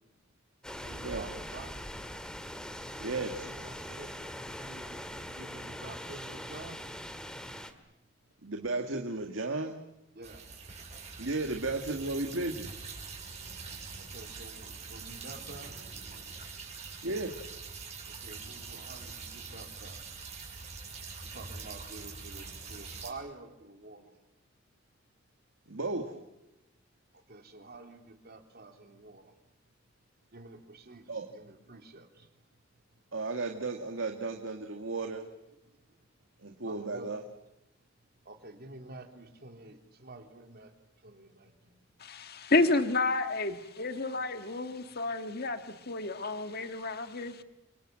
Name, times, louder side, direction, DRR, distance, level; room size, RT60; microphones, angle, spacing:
sound 1, 0.6-7.7, equal, 5° left, 2.0 m, -42 dB
voice 1, 0.8-1.8 3.3-4.2 4.4-6.8 10.1-10.4 14.0-15.8 18.2-20.0 21.3-24.1 27.3-29.2 30.3-32.3 36.6-37.1 38.3-40.7 41.0-41.8, right 2 dB, 55° right, 4 dB, 3.4 m, -49 dB
voice 2, 3.0-3.5 8.4-9.8 11.2-12.9 17.0-17.4 25.7-26.1 31.1-31.3 33.1-35.2 36.4-37.2, right 3 dB, 85° right, 3 dB, 2.0 m, -34 dB
sound 2, 10.2-23.1, right 4 dB, 35° right, 6.1 m, -44 dB
voice 3, 42.0-47.4, left 3 dB, 55° left, 8 dB, 1.7 m, -30 dB
30.0 x 24.5 x 7.7 m, 0.92 s
head